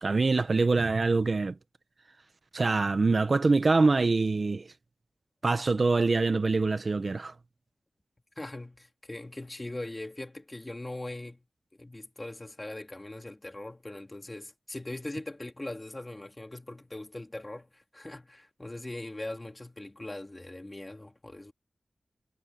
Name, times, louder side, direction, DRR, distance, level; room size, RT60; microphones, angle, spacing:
voice 1, 0.0-1.6 2.5-4.7 5.4-7.3, right 3 dB, 55° right, 1.1 m, -24 dB
voice 2, 8.4-11.4 11.8-21.5, left 2 dB, 25° left, 2.5 m, -41 dB
wide cardioid pair, 90°, 0 cm